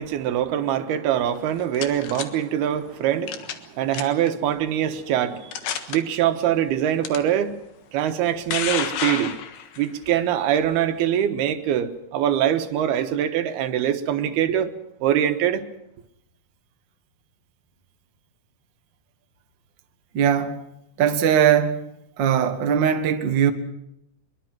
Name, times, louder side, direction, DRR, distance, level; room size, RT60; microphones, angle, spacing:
voice 1, 0.0-5.5 5.9-7.6 7.9-9.3 9.8-14.7 15.0-15.6, right 10 dB, 90° right, 3.2 m, -23 dB
sound 1, 1.4-2.3 3.3-3.7 3.9-4.3 4.9-5.0 5.5-6.0 7.0-7.2 8.1-9.9, left 9 dB, 80° left, 3.4 m, -29 dB
voice 2, 20.1-20.6 21.0-21.9 22.2-23.5, right 8 dB, 50° right, 1.3 m, -20 dB
23.5 x 23.0 x 6.1 m
omnidirectional pair, 4.4 m